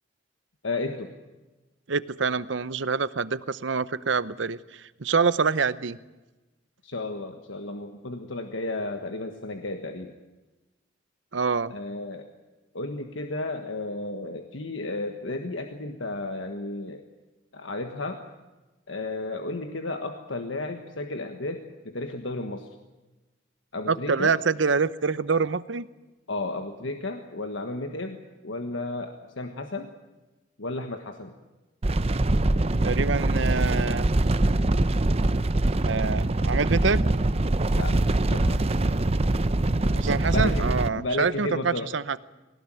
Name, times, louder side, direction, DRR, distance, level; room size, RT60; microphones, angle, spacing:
voice 1, 0.6-1.1 6.8-10.1 11.7-12.3 12.7-17.0 17.5-18.2 18.9-22.7 23.7-24.3 26.3-29.9 30.6-31.3 37.7-38.0 38.3-38.6 40.3-40.7 40.9-41.9, left 2 dB, 80° left, 5 dB, 1.5 m, -33 dB
voice 2, 1.9-6.0 11.3-11.7 23.9-25.9 32.8-34.1 35.8-37.1 40.0-42.2, right 5 dB, 70° right, 16 dB, 0.8 m, -26 dB
sound 1, 31.8-40.9, right 2 dB, 30° right, 0.7 m, -23 dB
20.5 x 18.5 x 9.1 m, 1.1 s
head